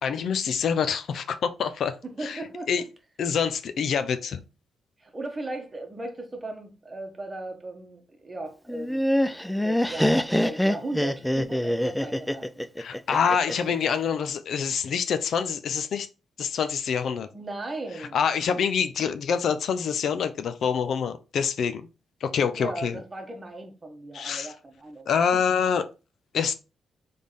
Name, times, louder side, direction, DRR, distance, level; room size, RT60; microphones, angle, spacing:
voice 1, 0.0-2.4 2.7-2.8 3.2-4.4 12.8-16.1 16.4-17.3 18.0-21.9 22.2-23.0 24.1-24.5 25.1-25.9 26.3-26.5, left 7 dB, 65° left, 0.5 m, -26 dB
voice 2, 2.0-2.8 5.0-9.0 9.5-12.6 17.3-18.2 22.5-25.4, right 2 dB, 25° right, 1.1 m, -37 dB
Laughter, 8.7-13.7, equal, 5° left, 0.3 m, -25 dB
3.5 x 3.3 x 4.0 m
cardioid pair, 100°, 0 cm